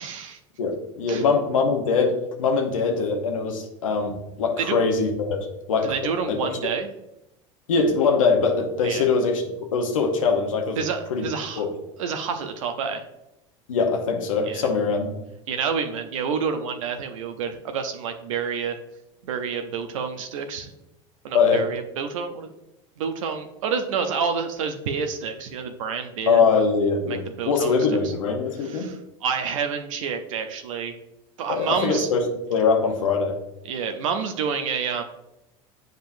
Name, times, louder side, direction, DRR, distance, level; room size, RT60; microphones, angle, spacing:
voice 1, 0.0-0.4 1.1-1.2 4.6-4.8 5.8-6.9 8.8-9.0 10.8-11.7 12.0-13.1 14.4-14.7 15.5-18.8 19.2-20.7 21.2-22.5 23.0-26.4 27.1-27.7 28.0-28.1 28.6-31.0 31.4-32.1 33.6-35.0, right 6 dB, 80° right, 6 dB, 0.6 m, -28 dB
voice 2, 0.6-6.5 7.7-10.8 11.1-11.3 11.6-11.7 13.7-15.1 21.3-21.7 26.3-28.9 31.5-33.4, left 4 dB, 90° left, 3 dB, 0.9 m, -22 dB
7.4 x 5.1 x 2.6 m, 0.88 s
hypercardioid pair, 90°, 17 cm